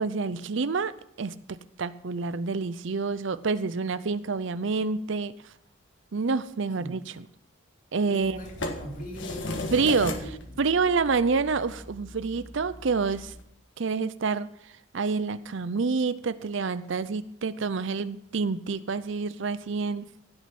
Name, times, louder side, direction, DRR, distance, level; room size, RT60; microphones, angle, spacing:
voice 1, 0.0-1.3 1.8-5.3 6.1-7.3 7.9-8.4 9.7-10.2 10.6-13.3 13.8-14.5 14.9-20.1, right 4 dB, 65° right, 15 dB, 0.6 m, -27 dB
voice 2, 8.1-9.7 10.2-10.6, equal, 40° left, 1 dB, 2.7 m, -41 dB
sound 1, 8.2-13.4, left 2 dB, 60° left, 1.6 m, -37 dB
16.5 x 6.2 x 6.0 m, 0.74 s
head